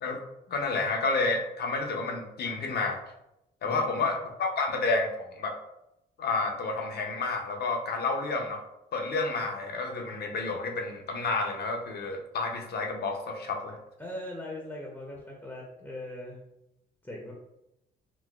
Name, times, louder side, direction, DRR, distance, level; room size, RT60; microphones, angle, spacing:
voice 1, 0.5-3.0 3.6-5.5 6.2-8.6 8.9-13.8, left 3 dB, 55° left, 3 dB, 0.6 m, -30 dB
voice 2, 3.6-4.1 14.0-16.4 17.0-17.3, left 1 dB, 10° left, -2 dB, 0.5 m, -40 dB
3.9 x 2.1 x 2.3 m, 0.87 s
cardioid pair, 90°, 20 cm